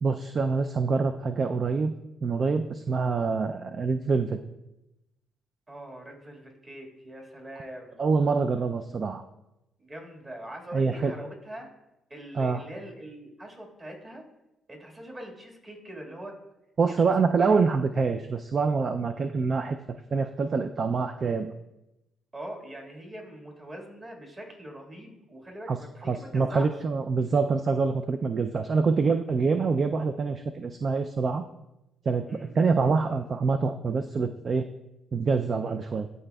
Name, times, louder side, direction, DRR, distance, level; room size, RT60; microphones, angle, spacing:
voice 1, 0.0-1.9 2.2-4.4 8.0-9.2 10.7-11.1 12.3-12.6 16.8-19.8 20.1-21.5 25.7-25.8 26.1-31.4 32.1-34.7 35.1-36.1, right 4 dB, 45° right, 8 dB, 0.3 m, -25 dB
voice 2, 5.7-8.0 9.8-11.7 12.1-14.2 14.7-16.4 16.9-17.0 17.4-17.6 22.3-26.7 32.3-32.5 35.6-35.8, right 1 dB, 30° right, 0 dB, 1.7 m, -42 dB
12.0 x 4.1 x 2.3 m, 0.93 s
cardioid pair, 90°, 0 cm